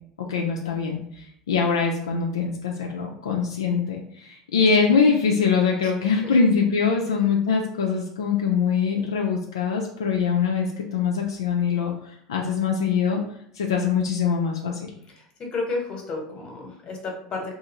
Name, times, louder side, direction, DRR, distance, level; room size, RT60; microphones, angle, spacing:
voice 1, 0.3-13.2 13.5-14.9, left 5 dB, 80° left, 1 dB, 0.4 m, -23 dB
voice 2, 6.0-6.4 15.1-17.5, left 3 dB, 40° left, 1 dB, 1.0 m, -32 dB
2.5 x 2.4 x 2.9 m, 0.70 s
hypercardioid pair, 80°, 2 cm